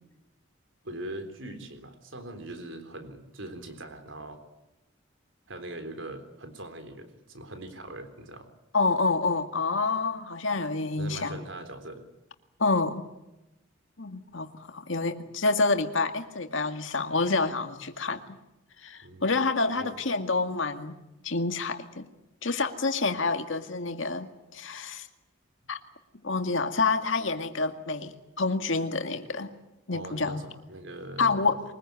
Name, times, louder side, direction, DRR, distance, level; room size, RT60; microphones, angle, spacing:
voice 1, 0.8-4.4 5.5-8.5 11.0-12.1 19.0-19.3 19.7-19.9 29.9-31.6, right 1 dB, 70° right, 8 dB, 3.8 m, -41 dB
voice 2, 8.7-11.4 12.6-13.1 14.0-18.4 18.8-21.0 21.2-22.1 22.4-25.1 25.7-25.8 26.2-29.5 29.9-30.5 31.2-31.6, left 3 dB, 70° left, 7 dB, 2.0 m, -28 dB
23.5 x 20.5 x 9.5 m, 0.96 s
head